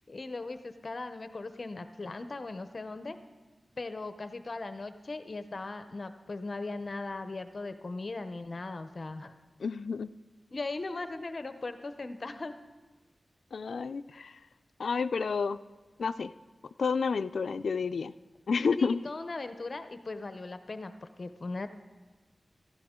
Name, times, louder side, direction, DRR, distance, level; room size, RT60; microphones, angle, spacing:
voice 1, 0.1-3.2 3.8-9.3 10.5-12.5 14.1-14.2 18.8-20.9 21.2-21.7, left 3 dB, 50° left, 9 dB, 0.6 m, -38 dB
voice 2, 9.6-10.1 13.5-14.4 14.8-15.6 16.0-16.3 16.8-18.1 18.5-19.0, left 5 dB, 85° left, 13 dB, 0.3 m, -30 dB
16.5 x 14.5 x 3.7 m, 1.3 s
wide cardioid pair, 90°, 0 cm